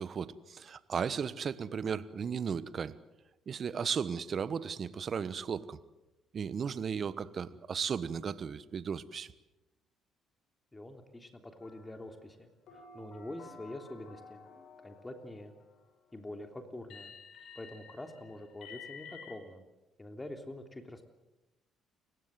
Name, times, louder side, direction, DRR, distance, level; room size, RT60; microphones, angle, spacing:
voice 1, 0.0-2.9 3.5-5.8 6.3-9.3, right 6 dB, 50° right, 16 dB, 1.2 m, -35 dB
voice 2, 10.7-14.4 14.8-15.5 16.1-17.1 17.5-19.6 20.0-21.0, left 1 dB, 20° left, 5 dB, 3.2 m, -45 dB
sound 1, 11.6-12.2 12.7-15.8 16.9-19.3, left 5 dB, 65° left, 6.3 m, -52 dB
29.5 x 16.0 x 7.8 m, 1.0 s
hypercardioid pair, 50°, 0 cm